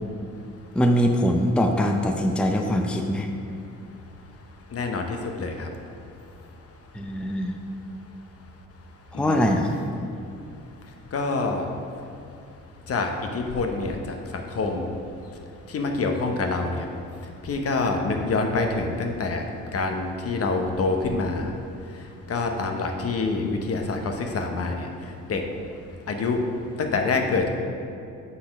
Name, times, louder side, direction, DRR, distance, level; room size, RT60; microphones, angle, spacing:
voice 1, 0.7-3.3 6.9-7.6 9.2-9.7, equal, 5° left, 3 dB, 0.5 m, -22 dB
voice 2, 4.7-5.7 9.1-9.4 11.1-11.6 12.9-14.0 14.3-14.9 15.7-16.8 17.4-19.4 19.7-21.5 22.3-24.9 25.3-25.4 26.1-26.4 26.8-27.5, left 3 dB, 50° left, 3 dB, 1.0 m, -26 dB
8.4 x 4.2 x 5.3 m, 2.6 s
cardioid pair, 90°, 30 cm